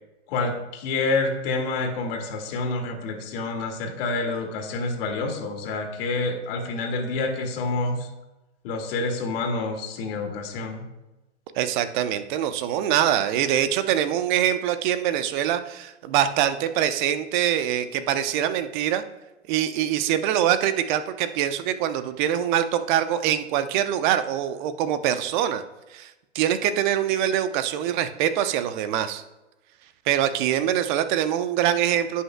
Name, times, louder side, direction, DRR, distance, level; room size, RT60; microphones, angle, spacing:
voice 1, 0.3-8.1 8.6-10.9, left 3 dB, 50° left, 2 dB, 2.0 m, -28 dB
voice 2, 11.6-19.0 19.5-25.6 25.9-29.2 30.1-32.2, right 10 dB, 40° right, 11 dB, 0.8 m, -24 dB
16.5 x 5.6 x 2.2 m, 1.0 s
hypercardioid pair, 115°, 36 cm